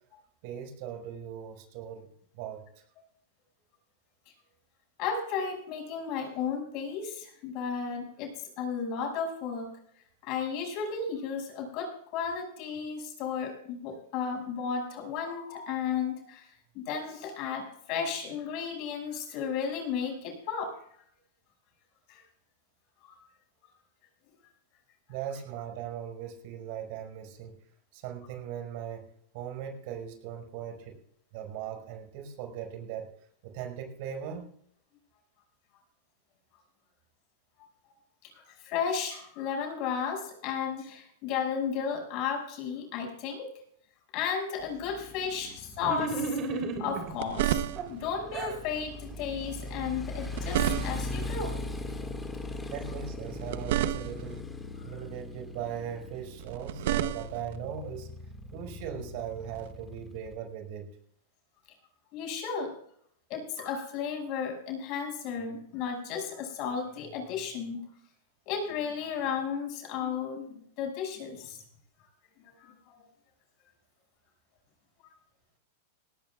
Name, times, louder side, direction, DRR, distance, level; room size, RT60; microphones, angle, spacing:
voice 1, 0.4-2.1 2.4-2.8 25.1-27.6 27.9-29.1 29.3-31.0 31.3-33.1 33.4-34.5 52.7-54.4 54.8-58.1 58.5-61.0, right 9 dB, 55° right, 4 dB, 5.4 m, -39 dB
voice 2, 5.0-9.7 10.2-16.5 16.7-20.7 22.1-22.2 23.0-23.1 38.2-43.5 44.1-47.6 47.9-51.6 54.8-55.0 62.1-62.7 63.3-67.8 68.5-71.6 72.4-72.7, left 6 dB, 45° left, 2 dB, 6.2 m, -34 dB
Motorcycle, 44.6-60.3, left 2 dB, 10° left, 2.0 m, -40 dB
sound 1, 45.8-47.1 47.8-48.6, right 3 dB, 30° right, 3.5 m, -33 dB
sound 2, 46.9-48.1 50.1-51.2 53.2-54.4 56.4-57.6 59.5-59.7, right 11 dB, 70° right, 0.9 m, -31 dB
18.5 x 18.5 x 2.4 m, 0.65 s
supercardioid pair, 140°, 0 cm